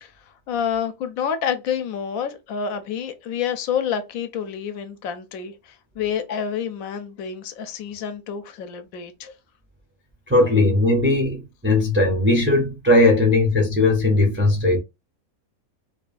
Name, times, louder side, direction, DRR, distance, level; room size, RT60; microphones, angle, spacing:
voice 1, 0.0-9.3, left 7 dB, 80° left, 1.0 m, -28 dB
voice 2, 10.3-14.8, left 2 dB, 20° right, 0.3 m, -18 dB
3.0 x 2.3 x 2.4 m
omnidirectional pair, 1.4 m